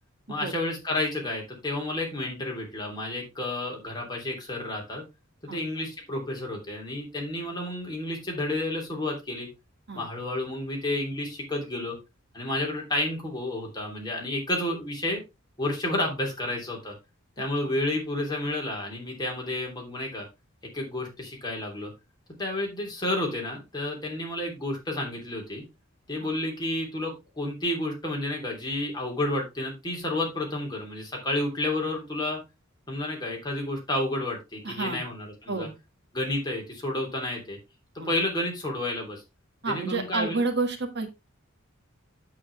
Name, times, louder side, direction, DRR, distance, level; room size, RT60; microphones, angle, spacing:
voice 1, 0.3-5.0 5.4-9.5 9.9-12.0 12.3-15.2 15.6-16.9 17.4-20.3 20.7-21.9 22.4-25.6 26.1-32.4 32.9-35.7 36.1-37.6 38.0-39.2 39.6-40.4, left 1 dB, 20° left, 0 dB, 3.1 m, -31 dB
voice 2, 34.6-35.0 35.5-35.7 38.0-38.1 39.6-41.1, right 3 dB, 55° right, 5 dB, 1.7 m, -29 dB
8.6 x 7.7 x 3.3 m, 0.23 s
head